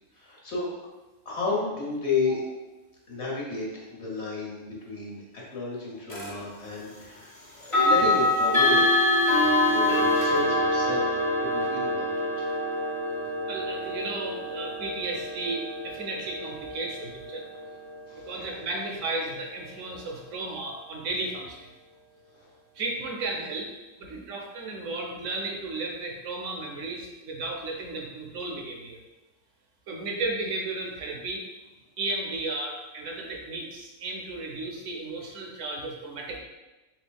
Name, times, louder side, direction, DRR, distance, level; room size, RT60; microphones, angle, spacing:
voice 1, 0.1-0.7 1.2-2.4 3.1-7.3 7.5-9.0 9.3-12.5 17.5-17.6 18.1-18.5 22.3-22.5, left 3 dB, 55° left, -4 dB, 1.3 m, -32 dB
sound 1, 6.1-6.3 7.6-18.5, left 1 dB, 30° left, 0.8 m, -25 dB
voice 2, 13.5-17.5 18.3-21.6 22.7-23.7 24.0-29.0 29.9-31.4 32.0-36.4, right 2 dB, 70° right, 1 dB, 1.0 m, -34 dB
4.3 x 3.6 x 2.3 m, 1.1 s
omnidirectional pair, 1.4 m